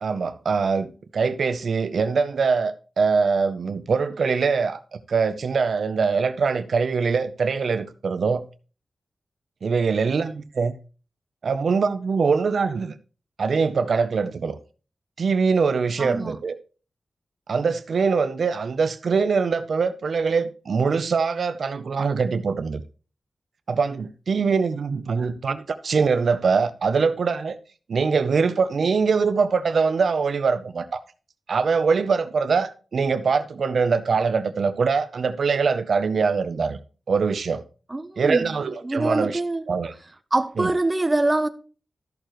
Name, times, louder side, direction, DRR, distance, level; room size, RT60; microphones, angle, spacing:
voice 1, 0.0-4.8 5.1-8.4 9.6-10.7 11.4-12.9 13.4-14.6 15.2-16.5 17.5-22.8 23.7-27.6 27.9-31.0 31.5-36.8 37.1-37.6 38.2-39.4 39.7-39.9 40.6-40.7, right 5 dB, 70° right, 0.6 m, -23 dB
voice 2, 16.0-16.4 37.9-39.7 40.3-41.5, right 2 dB, 25° right, 0.6 m, -24 dB
13.0 x 6.7 x 3.0 m
wide cardioid pair, 95°, 0 cm